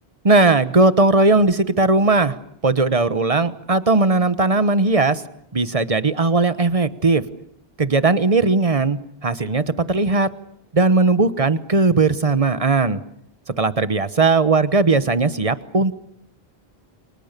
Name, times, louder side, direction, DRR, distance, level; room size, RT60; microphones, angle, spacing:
voice 1, 0.2-2.4 2.6-5.2 5.5-7.2 7.8-10.3 10.7-13.0 13.6-15.9, right 3 dB, 35° right, 14 dB, 1.2 m, -18 dB
29.5 x 24.5 x 6.8 m, 0.77 s
omnidirectional pair, 1.1 m